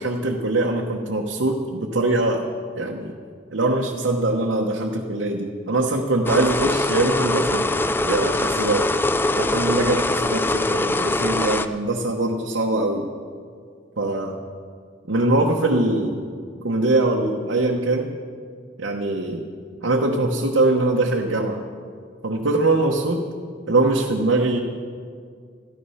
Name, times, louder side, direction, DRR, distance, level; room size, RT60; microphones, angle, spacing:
voice 1, 0.0-2.5 2.8-3.1 3.5-7.7 8.0-8.9 9.4-13.1 14.0-14.4 15.1-16.2 16.6-18.1 18.8-19.4 19.8-21.6 22.2-23.3 23.7-24.6, right 2 dB, 85° right, 0 dB, 1.0 m, -22 dB
sound 1, 6.3-11.7, left 2 dB, 10° left, 0.4 m, -22 dB
13.5 x 13.0 x 5.7 m, 2.1 s
head